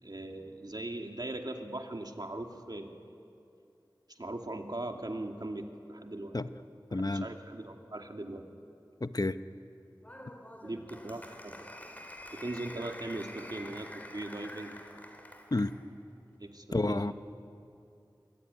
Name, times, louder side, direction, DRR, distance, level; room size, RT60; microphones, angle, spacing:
voice 1, 0.0-3.0 4.1-6.4 6.9-8.5 10.6-11.7 12.3-14.8 16.4-17.1, right 2 dB, 60° right, 4 dB, 2.4 m, -40 dB
voice 2, 6.9-7.3 9.0-9.4 15.5-15.7 16.7-17.1, left 2 dB, 50° left, 11 dB, 0.9 m, -30 dB
Applause, 10.0-15.8, left 1 dB, 20° left, 3.4 m, -47 dB
26.0 x 23.5 x 9.8 m, 2.6 s
wide cardioid pair, 45°, 8 cm